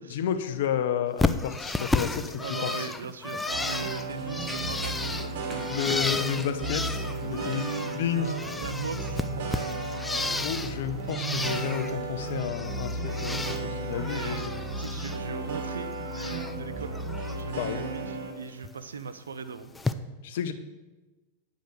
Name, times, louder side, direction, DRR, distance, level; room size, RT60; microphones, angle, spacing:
voice 1, 0.0-2.9 5.7-7.6 7.9-8.3 10.4-14.4 17.6-17.9 20.2-20.5, left 9 dB, 65° left, 9 dB, 0.9 m, -31 dB
Bird, 1.2-10.8 11.1-11.9 12.3-13.6 13.9-15.2 15.5-16.5 16.9-17.3 18.6-18.7 19.7-19.9, left 3 dB, 10° left, 0.5 m, -33 dB
voice 2, 2.4-5.7 7.1-9.9 13.9-14.5 14.8-17.0 17.3-19.7, right 5 dB, 85° right, 11 dB, 0.7 m, -39 dB
Run, 3.5-9.0, right 1 dB, 10° right, 1.8 m, -46 dB
sound 1, 3.5-18.3, right 2 dB, 60° right, 2.1 m, -34 dB
9.4 x 5.2 x 6.8 m, 1.2 s
hypercardioid pair, 105°, 0 cm